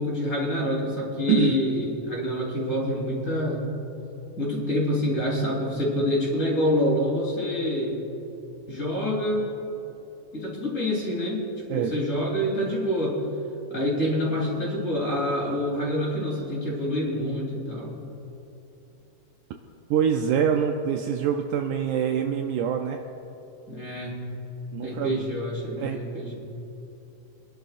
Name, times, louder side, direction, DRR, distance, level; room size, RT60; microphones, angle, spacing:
voice 1, 0.0-3.7 4.4-8.0 8.7-9.5 10.3-11.4 11.7-13.2 13.7-18.0 23.7-24.2 24.8-26.3, left 1 dB, 25° left, -5 dB, 3.1 m, -26 dB
voice 2, 19.9-23.0 24.7-25.2 25.8-26.0, right 8 dB, 80° right, 4 dB, 1.9 m, -25 dB
25.5 x 11.5 x 2.5 m, 3.0 s
omnidirectional pair, 3.9 m